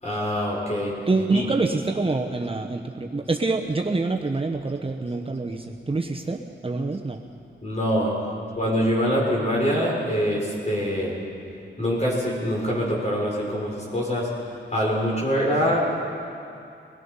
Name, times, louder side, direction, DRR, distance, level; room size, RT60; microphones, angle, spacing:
voice 1, 0.0-0.9 1.3-1.5 7.6-8.1 8.5-11.1 11.8-14.3 14.7-15.8, equal, 35° left, -3 dB, 6.3 m, -24 dB
voice 2, 1.1-7.2 8.3-8.4, right 3 dB, 30° right, 2 dB, 1.0 m, -26 dB
23.0 x 20.5 x 5.6 m, 2.6 s
wide cardioid pair, 90°, 20 cm